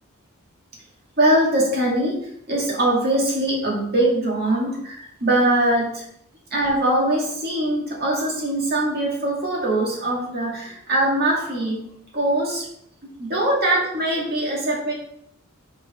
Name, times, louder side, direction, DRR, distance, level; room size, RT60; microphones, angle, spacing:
voice 1, 1.2-2.2 2.5-6.0 6.5-11.8 12.1-12.7 13.2-14.9, right 1 dB, 45° right, -4 dB, 2.2 m, -22 dB
6.3 x 4.8 x 4.3 m, 0.72 s
head